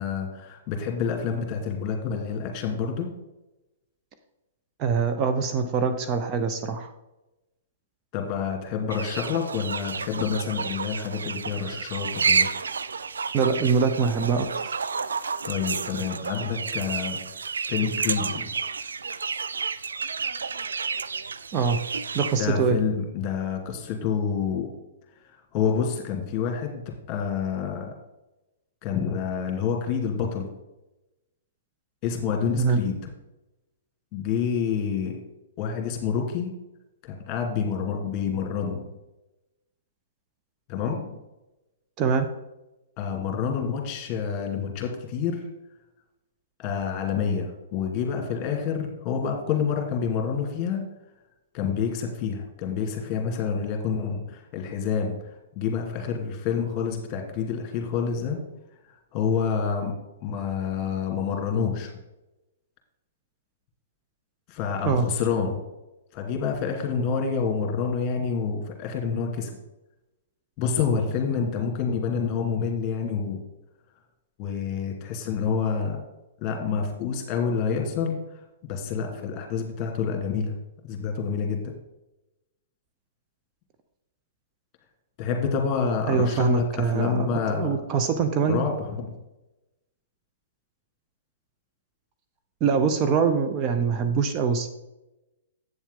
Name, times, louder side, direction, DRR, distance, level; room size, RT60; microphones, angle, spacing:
voice 1, 0.0-3.1 8.1-12.5 15.4-17.2 17.7-18.5 22.4-24.7 25.5-26.8 27.1-27.9 28.8-30.5 32.0-33.0 34.1-35.2 35.6-36.5 37.0-38.8 40.7-41.2 43.0-45.4 46.6-50.9 51.5-55.2 55.6-58.4 59.1-59.9 60.2-61.9 64.5-65.6 66.1-69.6 70.6-73.4 74.4-76.0 76.4-78.2 78.6-80.5 80.9-81.7 85.2-87.7 88.5-89.1, left 6 dB, 35° left, 2 dB, 2.3 m, -28 dB
voice 2, 4.8-6.9 13.3-14.8 21.5-21.8 22.1-22.8 32.6-32.8 42.0-42.3 64.8-65.0 86.1-88.6 92.6-94.7, right 5 dB, 30° right, 6 dB, 0.8 m, -24 dB
sound 1, 8.9-22.4, right 5 dB, 80° right, 0.4 m, -30 dB
8.5 x 7.2 x 3.8 m, 0.98 s
hypercardioid pair, 120°, 0 cm